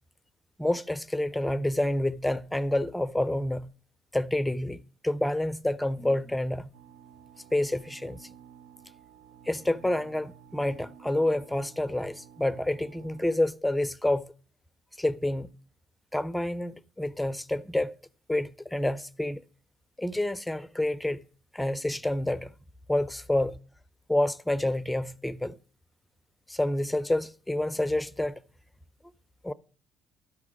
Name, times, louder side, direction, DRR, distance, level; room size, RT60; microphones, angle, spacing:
voice 1, 0.6-3.7 4.1-6.7 7.5-8.3 9.5-14.3 15.0-15.5 16.1-18.0 18.3-19.4 20.0-21.2 21.5-22.5 22.9-23.6 24.1-25.6 26.5-28.4 29.4-29.5, left 1 dB, 5° left, 0.5 m, -28 dB
sound 1, 6.7-13.4, right 9 dB, 80° right, 0.4 m, -53 dB
13.0 x 5.8 x 6.2 m
cardioid pair, 95°, 0 cm